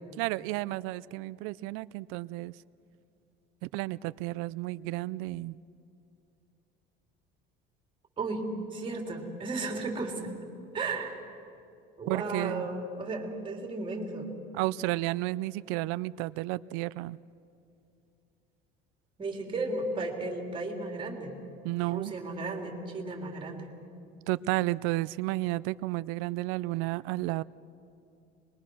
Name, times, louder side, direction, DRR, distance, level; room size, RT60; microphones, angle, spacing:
voice 1, 0.2-2.5 3.6-5.6 12.1-12.7 14.5-17.2 21.6-22.1 24.3-27.4, right 19 dB, 90° right, 18 dB, 0.5 m, -32 dB
voice 2, 8.7-10.2 10.7-11.2 12.0-14.3 19.2-21.4 21.8-23.7, right 3 dB, 25° right, 2 dB, 3.3 m, -34 dB
25.0 x 21.5 x 6.2 m, 2.6 s
cardioid pair, 140°, 21 cm